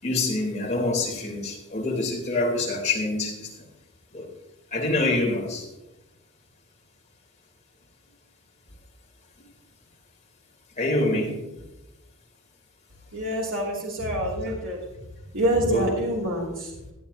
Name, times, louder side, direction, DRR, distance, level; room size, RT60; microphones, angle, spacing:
voice 1, 0.0-3.5 4.1-4.3 4.7-5.6 10.8-11.4 15.7-15.9, left 2 dB, 30° left, -1 dB, 3.5 m, -25 dB
voice 2, 13.1-14.8 15.3-16.9, right 1 dB, 60° right, -3 dB, 2.8 m, -26 dB
17.5 x 10.5 x 2.8 m, 1.0 s
head